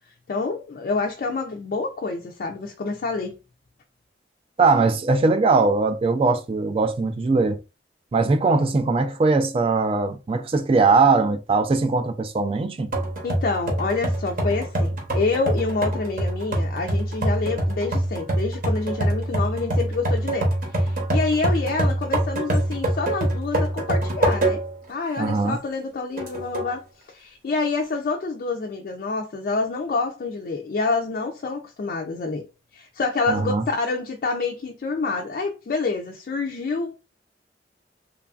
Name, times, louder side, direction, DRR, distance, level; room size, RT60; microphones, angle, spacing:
voice 1, 0.3-3.4 13.2-24.6 24.9-32.4 32.7-37.0, left 3 dB, 50° left, 0.3 m, -27 dB
voice 2, 4.6-7.6 8.1-12.9 25.2-25.6 33.3-33.6, right 3 dB, 30° right, 0.3 m, -20 dB
sound 1, 12.9-24.8 25.3-25.4 26.2-26.7, right 1 dB, 50° right, 0.8 m, -25 dB
3.1 x 2.3 x 2.3 m
head